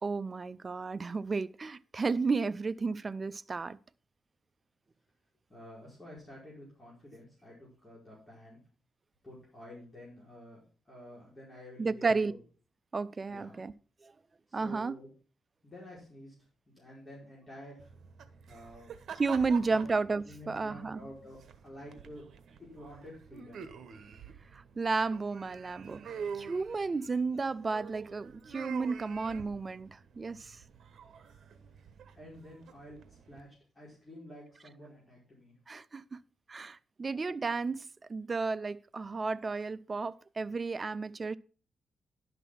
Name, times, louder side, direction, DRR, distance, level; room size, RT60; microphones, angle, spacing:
voice 1, 0.0-3.8 11.8-12.3 12.9-13.7 14.0-14.1 14.5-15.0 19.2-21.0 24.5-30.6 35.7-36.2 36.5-37.8 38.1-41.4, right 4 dB, 30° right, 0.5 m, -33 dB
voice 2, 5.5-8.6 9.2-12.4 13.3-13.6 14.5-15.1 15.6-17.9 18.5-18.9 19.5-19.8 20.2-22.2 22.6-23.7 32.1-35.6, left 1 dB, 20° left, 5.0 m, -50 dB
sound 1, 17.8-33.4, right 6 dB, 65° right, 1.1 m, -47 dB
11.0 x 6.0 x 5.7 m
cardioid pair, 100°, 0 cm